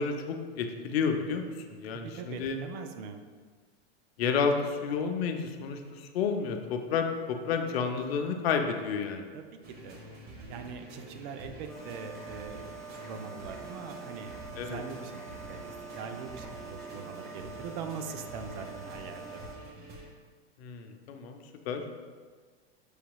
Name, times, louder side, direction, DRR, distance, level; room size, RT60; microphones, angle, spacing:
voice 1, 0.0-2.6 4.2-9.3 14.6-14.8 20.6-21.4 21.7-21.8, left 5 dB, 70° left, 5 dB, 0.6 m, -31 dB
voice 2, 1.9-3.2 9.3-10.0 10.5-19.4, right 6 dB, 50° right, 7 dB, 0.5 m, -42 dB
sound 1, 9.6-20.1, right 1 dB, 30° right, 0.8 m, -47 dB
sound 2, 11.7-19.6, right 4 dB, ahead, 0.9 m, -45 dB
6.4 x 2.8 x 2.3 m, 1.5 s
hypercardioid pair, 110°, 32 cm